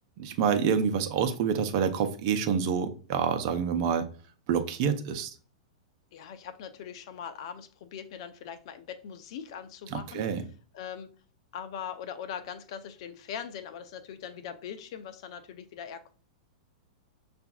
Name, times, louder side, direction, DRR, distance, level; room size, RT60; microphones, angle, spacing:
voice 1, 0.2-4.1 4.5-5.3 9.9-10.4, right 7 dB, 50° right, 7 dB, 0.7 m, -27 dB
voice 2, 6.1-10.2 10.7-11.1 11.5-16.1, left 8 dB, 60° left, 10 dB, 0.6 m, -41 dB
6.7 x 2.6 x 2.3 m, 0.40 s
hypercardioid pair, 115°, 3 cm